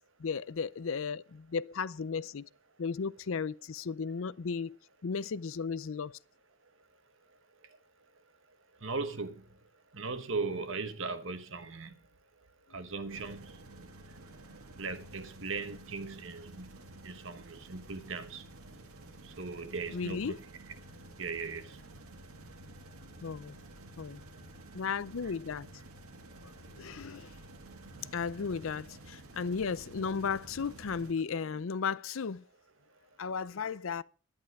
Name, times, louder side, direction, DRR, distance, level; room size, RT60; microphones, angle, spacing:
voice 1, 0.2-2.5 2.8-4.8 5.0-6.2 19.9-20.4 23.2-23.6 24.0-24.2 24.7-25.7 26.8-27.3 28.1-32.4 33.2-34.0, left 5 dB, 65° left, 0.5 m, -35 dB
voice 2, 8.8-9.4 9.9-11.9 12.7-13.4 14.8-16.7 17.0-18.4 19.4-20.4 21.2-21.7 25.2-25.3, right 4 dB, 60° right, 1.2 m, -38 dB
sound 1, 13.1-31.1, right 1 dB, 80° right, 1.7 m, -51 dB
11.5 x 10.5 x 4.8 m
head